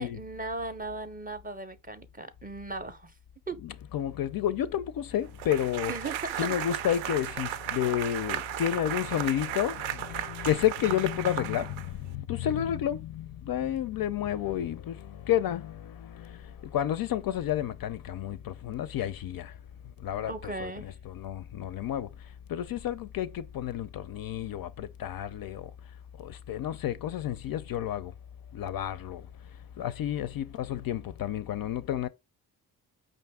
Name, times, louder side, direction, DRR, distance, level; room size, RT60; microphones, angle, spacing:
voice 1, 0.0-3.1 3.5-3.6 5.9-6.5 12.4-12.6 20.3-20.9, right 2 dB, 20° right, 0.6 m, -37 dB
voice 2, 3.6-5.9 6.4-19.5 20.0-22.1 22.5-25.7 26.2-28.1 28.5-29.3 29.8-32.1, left 11 dB, 50° left, 0.5 m, -31 dB
sound 1, 5.4-12.1, right 11 dB, 70° right, 0.5 m, -35 dB
5.1 x 2.5 x 3.5 m
hypercardioid pair, 45°, 48 cm